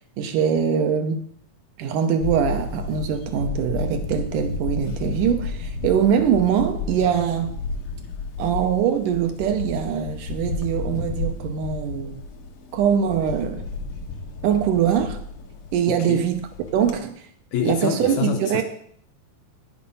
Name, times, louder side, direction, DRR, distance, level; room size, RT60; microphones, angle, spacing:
voice 1, 0.2-1.2 1.8-7.6 8.4-12.2 12.7-13.7 14.4-15.2 15.7-16.4 16.7-17.2 17.6-18.6, right 8 dB, 75° right, 6 dB, 2.3 m, -22 dB
Camera, 2.2-17.0, left 3 dB, 85° left, 3.0 m, -32 dB
voice 2, 17.5-18.6, left 8 dB, 70° left, 4 dB, 1.8 m, -26 dB
9.6 x 8.0 x 5.5 m, 0.62 s
omnidirectional pair, 3.9 m